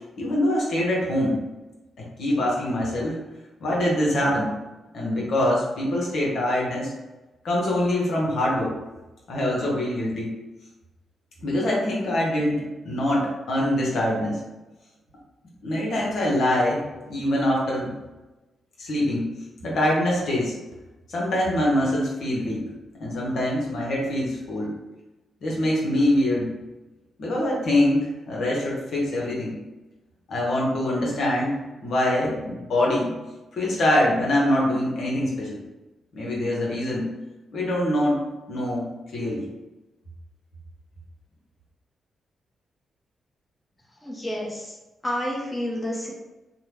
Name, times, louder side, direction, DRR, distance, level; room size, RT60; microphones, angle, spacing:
voice 1, 0.2-1.4 2.2-3.2 3.6-4.5 4.9-6.9 7.4-8.7 9.3-10.3 11.4-14.4 15.6-16.8 17.1-17.9 18.8-19.2 19.6-20.5 21.1-22.6 23.0-24.7 25.4-26.5 27.2-29.5 30.3-31.5 31.8-33.1 33.5-35.6 36.1-37.0 37.5-38.2 38.5-38.8 39.1-39.4, left 1 dB, 70° left, -4 dB, 1.0 m, -24 dB
voice 2, 44.0-44.8 45.0-46.1, left 1 dB, 20° left, -3 dB, 0.8 m, -29 dB
2.9 x 2.2 x 3.3 m, 1.1 s
supercardioid pair, 60°, 0 cm